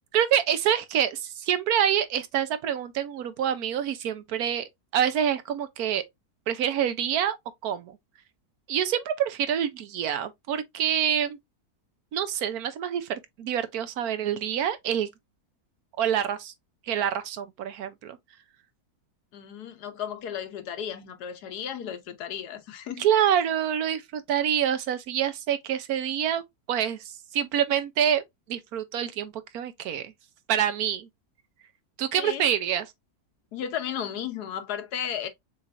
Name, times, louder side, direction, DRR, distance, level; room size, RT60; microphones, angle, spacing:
voice 1, 0.1-6.0 6.5-7.4 7.6-8.0 8.7-11.4 12.1-15.1 16.0-16.5 16.9-18.2 23.0-28.2 28.5-30.1 30.5-31.1 32.0-32.9, right 9 dB, 75° right, 1.2 m, -26 dB
voice 2, 19.3-23.1 32.2-32.4 33.5-35.3, left 9 dB, 90° left, 1.4 m, -34 dB
6.4 x 3.2 x 2.5 m
omnidirectional pair, 1.6 m